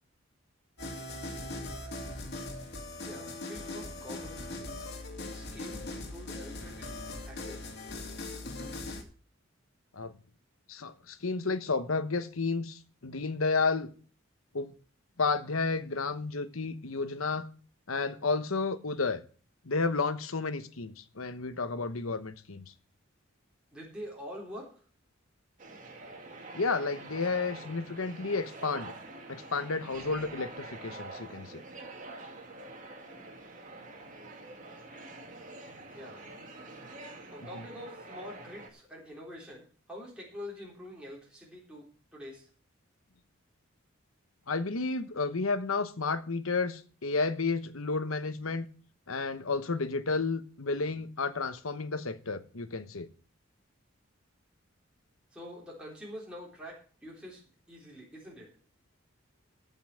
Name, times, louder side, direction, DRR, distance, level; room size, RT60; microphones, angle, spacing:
sound 1, 0.8-9.0, left 2 dB, 55° left, 2.5 m, -40 dB
voice 1, 3.1-4.9 5.2-7.7 23.7-24.8 35.9-36.2 37.3-41.9 42.1-42.5 55.3-57.4 57.7-58.5, equal, 5° right, 3.6 m, -46 dB
voice 2, 10.7-13.9 14.5-14.7 15.2-17.5 17.9-19.2 19.6-22.6 26.5-28.9 29.3-31.6 37.5-37.6 44.5-48.7 49.1-53.1, left 4 dB, 90° left, 1.1 m, -31 dB
sound 2, 25.6-38.7, right 2 dB, 40° right, 2.3 m, -46 dB
14.0 x 5.6 x 7.5 m
head